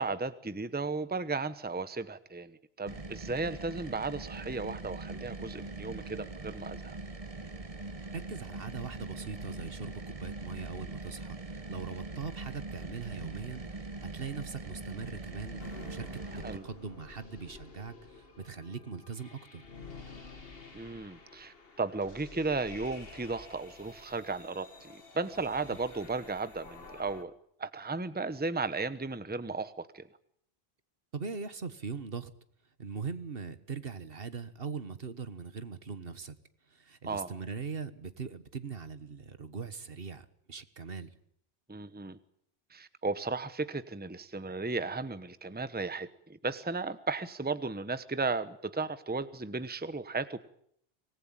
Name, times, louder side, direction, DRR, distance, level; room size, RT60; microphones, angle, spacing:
voice 1, 0.0-7.0 16.3-16.6 20.7-27.3 27.6-30.0 37.0-37.3 41.7-42.2 42.7-50.4, right 3 dB, 10° right, 13 dB, 1.0 m, -35 dB
sound 1, 2.9-16.6, right 3 dB, 35° right, 1.3 m, -42 dB
voice 2, 8.1-11.4 11.7-13.6 14.0-16.1 16.3-19.6 25.7-25.8 31.1-32.3 32.8-36.3 36.7-41.1, right 5 dB, 65° right, 12 dB, 1.6 m, -40 dB
sound 2, 15.6-27.2, left 3 dB, 65° left, 2.1 m, -50 dB
25.5 x 19.5 x 8.9 m, 0.69 s
omnidirectional pair, 1.1 m